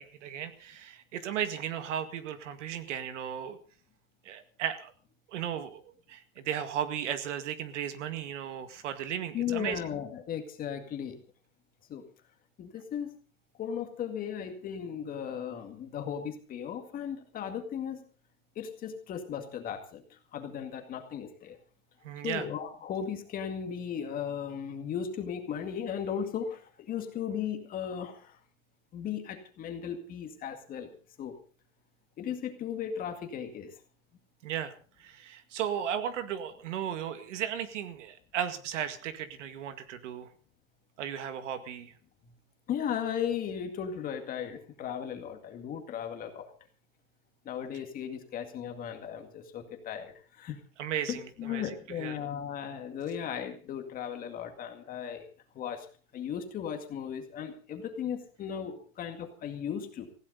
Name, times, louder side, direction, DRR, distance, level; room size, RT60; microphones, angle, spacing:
voice 1, 0.0-3.6 4.2-4.9 5.3-9.8 22.0-22.5 34.4-34.7 35.0-40.3 41.0-41.9 50.8-52.1, right 9 dB, 60° right, 10 dB, 2.0 m, -35 dB
voice 2, 9.3-11.2 11.9-12.0 12.6-13.1 13.6-18.0 18.6-21.6 22.2-28.4 28.9-30.9 31.2-31.4 32.2-33.7 42.2-42.3 42.7-46.5 47.4-50.6 51.1-55.3 55.5-55.9 56.1-60.1, left 8 dB, 20° left, 6 dB, 2.1 m, -36 dB
19.0 x 16.0 x 4.0 m, 0.39 s
supercardioid pair, 160°, 40 cm